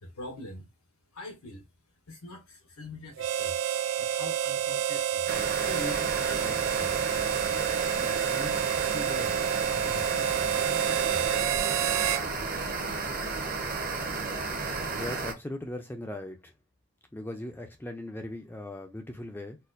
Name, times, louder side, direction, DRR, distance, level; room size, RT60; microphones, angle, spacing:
voice 1, 0.0-0.7 1.1-1.7 2.1-3.6 4.0-7.5 8.0-8.6 8.9-9.4 9.7-11.3, left 1 dB, 85° left, 0.8 m, -44 dB
Harmonica, 3.2-12.3, right 10 dB, 65° right, 0.4 m, -29 dB
sound 1, 5.3-15.3, right 3 dB, 40° right, 0.8 m, -33 dB
voice 2, 15.0-16.5 17.1-19.6, left 1 dB, 10° left, 0.3 m, -38 dB
4.1 x 2.2 x 2.5 m
head